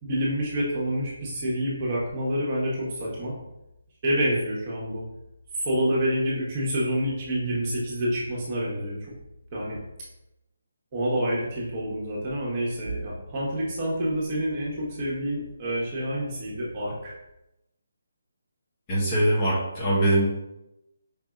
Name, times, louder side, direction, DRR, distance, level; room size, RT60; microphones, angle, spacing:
voice 1, 0.0-3.3 4.0-5.0 5.6-9.0 9.5-9.8 10.9-17.1, equal, 30° right, -6 dB, 1.2 m, -27 dB
voice 2, 18.9-20.4, right 1 dB, 20° left, -7 dB, 1.0 m, -22 dB
5.0 x 2.6 x 2.4 m, 0.91 s
figure-of-eight pair, 155°, 0 cm